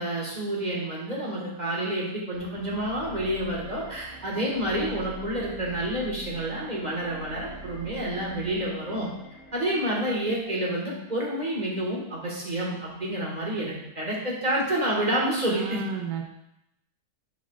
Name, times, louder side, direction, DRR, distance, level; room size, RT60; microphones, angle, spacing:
voice 1, 0.0-9.1 9.5-15.8, right 1 dB, 30° right, -4 dB, 1.6 m, -29 dB
sound 1, 2.3-11.4, right 3 dB, 90° left, 3.1 m, -45 dB
voice 2, 15.5-16.2, right 6 dB, 90° right, 1 dB, 1.3 m, -32 dB
8.1 x 6.1 x 2.4 m, 0.85 s
omnidirectional pair, 1.7 m